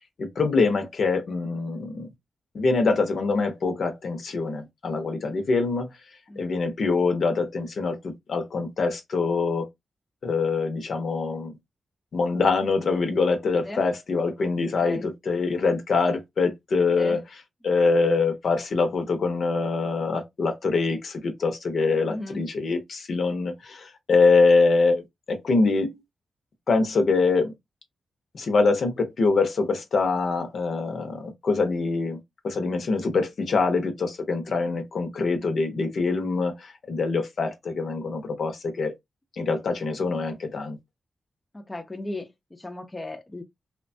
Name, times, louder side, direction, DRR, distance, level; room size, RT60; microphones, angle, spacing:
voice 1, 0.2-2.1 2.5-5.9 6.4-9.7 10.2-11.5 12.1-17.2 17.6-25.0 25.3-26.0 26.7-27.5 28.3-32.2 32.4-38.9 39.4-40.8, left 4 dB, 60° left, 0.7 m, -24 dB
voice 2, 22.1-22.4 41.5-43.4, left 2 dB, 15° left, 0.5 m, -36 dB
2.9 x 2.2 x 2.6 m
wide cardioid pair, 110°, 0 cm